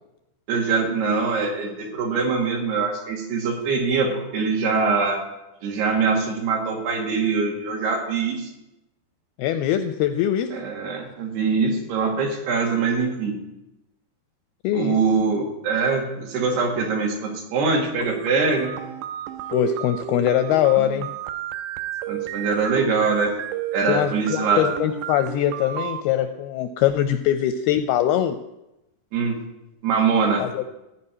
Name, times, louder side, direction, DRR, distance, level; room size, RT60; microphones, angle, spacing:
voice 1, 0.5-5.2 5.6-8.5 10.5-13.4 14.7-18.8 22.1-23.4 23.7-24.6 29.1-29.4 29.8-30.5, right 4 dB, 70° right, 1 dB, 4.0 m, -23 dB
voice 2, 9.4-10.5 14.6-15.0 19.5-21.1 23.9-28.4 30.4-30.7, left 11 dB, 85° left, 9 dB, 2.2 m, -22 dB
sound 1, 18.0-26.0, right 11 dB, 90° right, 3.0 m, -32 dB
15.0 x 5.5 x 9.7 m, 0.93 s
omnidirectional pair, 5.0 m